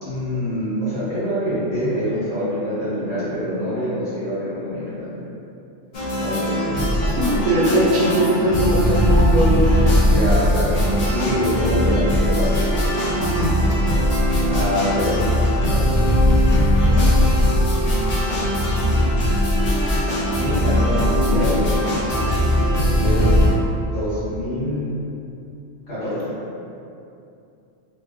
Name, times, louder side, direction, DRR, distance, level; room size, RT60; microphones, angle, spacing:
voice 1, 0.0-5.2 6.1-6.7 10.1-12.6 14.4-15.9 20.4-21.6 22.9-23.4 23.8-24.9 25.9-26.4, equal, 60° left, -15 dB, 1.8 m, -25 dB
sound 1, 5.9-23.5, equal, 45° left, 0.6 m, -19 dB
voice 2, 7.0-9.6 13.2-13.5, right 1 dB, 50° right, -7 dB, 0.6 m, -20 dB
3.4 x 2.2 x 2.4 m, 2.6 s
omnidirectional pair, 1.2 m